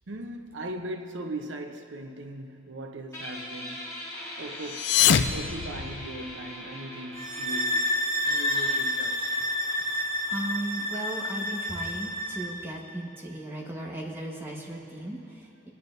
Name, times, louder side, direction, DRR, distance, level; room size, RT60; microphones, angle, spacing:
voice 1, 0.1-4.1 4.4-7.9 8.2-9.2, right 1 dB, 85° right, 4 dB, 0.8 m, -39 dB
Guitar, 3.1-10.3, left 1 dB, 15° left, 2.1 m, -42 dB
sound 1, 4.6-6.5, left 9 dB, 65° left, 0.4 m, -25 dB
sound 2, 7.1-12.5, left 1 dB, 55° right, 1.8 m, -29 dB
voice 2, 10.3-15.7, right 1 dB, 15° right, -3 dB, 1.3 m, -36 dB
26.5 x 9.4 x 2.6 m, 2.7 s
head